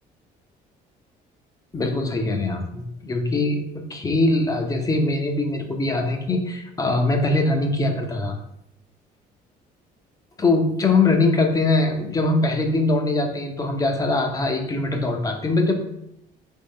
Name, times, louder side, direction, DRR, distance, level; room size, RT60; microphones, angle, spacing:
voice 1, 1.7-8.4 10.4-15.7, left 2 dB, 20° left, 3 dB, 0.7 m, -22 dB
3.6 x 3.0 x 4.2 m, 0.80 s
cardioid pair, 110°, 17 cm